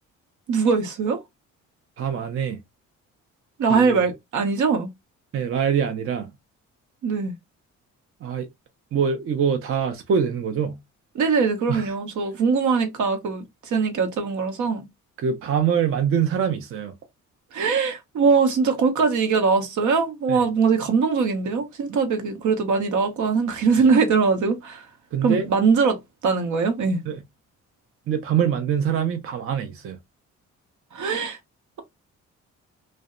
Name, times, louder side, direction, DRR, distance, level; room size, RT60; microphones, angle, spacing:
voice 1, 0.5-1.2 3.6-4.9 7.0-7.3 11.1-14.9 17.5-24.9 25.2-27.0 30.9-31.4, right 5 dB, 75° right, 0.8 m, -22 dB
voice 2, 2.0-2.6 3.7-4.0 5.3-6.3 8.2-8.5 8.9-10.8 11.7-11.9 15.2-16.9 20.3-20.4 25.1-25.4 27.1-27.2 28.1-30.0, right 7 dB, 45° right, 0.5 m, -24 dB
2.6 x 2.1 x 2.4 m
cardioid pair, 90°, 30 cm